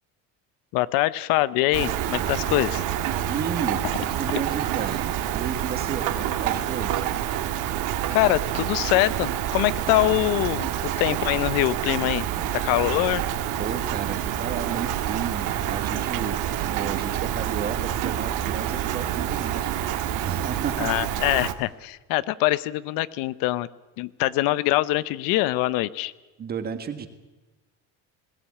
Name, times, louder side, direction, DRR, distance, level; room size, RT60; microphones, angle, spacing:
voice 1, 0.7-2.8 8.1-12.3 12.6-13.2 20.8-23.7 24.0-26.1, left 17 dB, 80° left, 17 dB, 0.8 m, -24 dB
Rain, 1.7-21.5, right 11 dB, 65° right, 1.6 m, -27 dB
voice 2, 3.3-7.1 13.6-19.9 20.2-20.9 26.4-27.1, right 7 dB, 25° right, 9 dB, 1.5 m, -33 dB
20.5 x 17.0 x 8.6 m, 1.1 s
cardioid pair, 170°, 34 cm